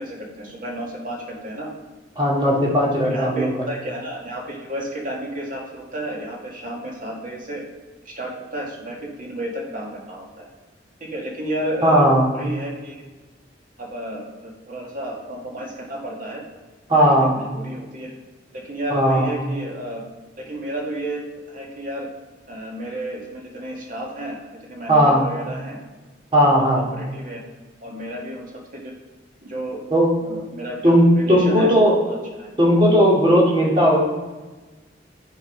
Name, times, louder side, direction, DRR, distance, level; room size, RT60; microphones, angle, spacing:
voice 1, 0.0-1.7 3.0-7.6 8.0-10.5 11.0-13.0 13.8-16.4 16.9-18.1 18.5-20.0 20.4-22.1 22.5-24.4 24.7-25.8 26.3-27.4 27.8-28.9 29.4-29.8 30.2-31.7 32.0-32.5 33.4-33.5, right 1 dB, 50° right, -1 dB, 1.9 m, -32 dB
voice 2, 2.2-3.5 11.8-12.2 16.9-17.3 18.9-19.3 24.9-25.2 26.3-26.8 29.9-30.1 30.8-32.0 32.6-34.0, equal, 30° right, -4 dB, 2.2 m, -16 dB
11.0 x 4.6 x 5.0 m, 1.2 s
head